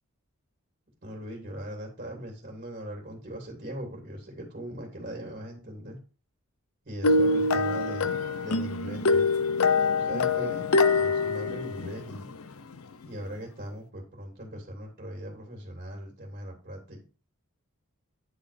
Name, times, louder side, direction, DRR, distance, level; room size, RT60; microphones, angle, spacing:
voice 1, 1.0-6.0 6.8-8.1 8.4-9.3 9.9-10.7 11.0-12.3 13.0-17.0, equal, 40° right, -1 dB, 2.8 m, -39 dB
sound 1, 7.0-12.5, left 3 dB, 75° left, 0.7 m, -25 dB
9.9 x 4.3 x 5.1 m, 0.35 s
head